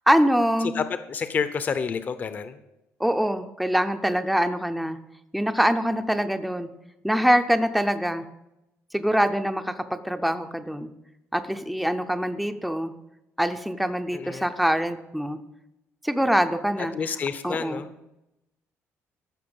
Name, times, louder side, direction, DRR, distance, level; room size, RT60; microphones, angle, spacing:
voice 1, 0.1-0.8 3.0-5.0 5.3-6.7 7.0-8.2 8.9-10.9 11.3-12.9 13.4-15.4 16.0-16.9 17.4-17.8, equal, ahead, 7 dB, 0.6 m, -24 dB
voice 2, 0.7-2.6 14.1-14.5 16.8-17.9, left 6 dB, 35° left, 11 dB, 0.7 m, -29 dB
14.5 x 6.5 x 7.1 m, 0.89 s
cardioid pair, 170°, 5 cm